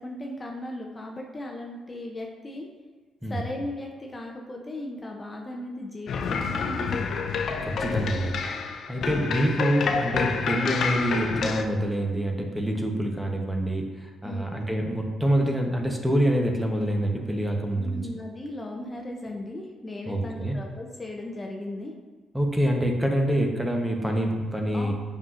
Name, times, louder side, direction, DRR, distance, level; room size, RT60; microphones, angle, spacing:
voice 1, 0.0-2.7 3.3-7.1 14.2-14.6 17.7-21.9 24.7-24.9, left 1 dB, 25° left, 0 dB, 0.6 m, -37 dB
sound 1, 6.1-11.6, left 5 dB, 65° left, 0.5 m, -28 dB
voice 2, 7.6-18.0 20.1-20.6 22.3-24.9, equal, 10° right, 2 dB, 0.9 m, -26 dB
7.2 x 5.6 x 2.5 m, 1.4 s
cardioid pair, 90°, 0 cm